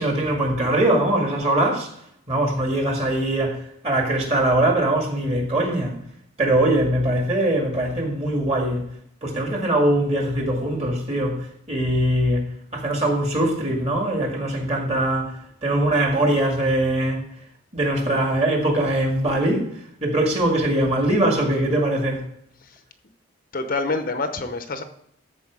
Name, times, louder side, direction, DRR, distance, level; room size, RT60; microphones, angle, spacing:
voice 1, 0.0-1.9 2.3-5.9 6.4-8.9 9.2-12.5 12.7-17.2 17.7-22.2, right 1 dB, 30° right, 2.0 m, -22 dB
voice 2, 23.5-24.8, left 3 dB, 45° left, 0.8 m, -27 dB
13.0 x 4.8 x 4.8 m
head